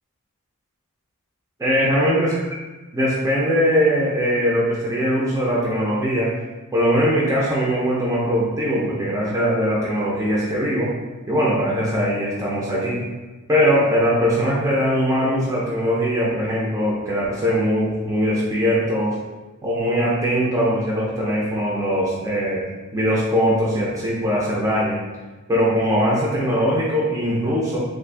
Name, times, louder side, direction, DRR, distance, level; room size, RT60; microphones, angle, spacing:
voice 1, 1.6-2.3 2.9-6.3 6.7-10.9 11.3-13.0 13.5-19.1 19.6-22.6 22.9-25.0 25.5-27.8, equal, 15° right, -6 dB, 0.5 m, -21 dB
3.1 x 2.5 x 3.3 m, 1.2 s
head